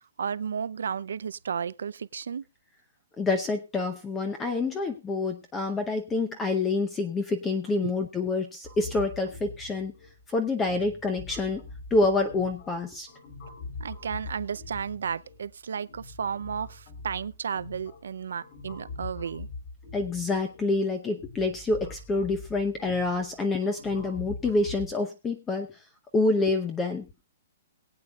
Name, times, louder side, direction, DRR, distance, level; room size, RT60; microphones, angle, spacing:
voice 1, 0.2-2.4 7.8-7.9 13.8-19.5, right 7 dB, 80° right, 0.5 m, -33 dB
voice 2, 3.2-9.9 10.3-11.6 11.9-13.1 19.9-25.7 26.1-27.1, left 3 dB, 10° left, 0.8 m, -27 dB
sound 1, 8.6-24.9, left 3 dB, 35° left, 3.7 m, -43 dB
22.0 x 8.4 x 2.4 m
hypercardioid pair, 165°, 0 cm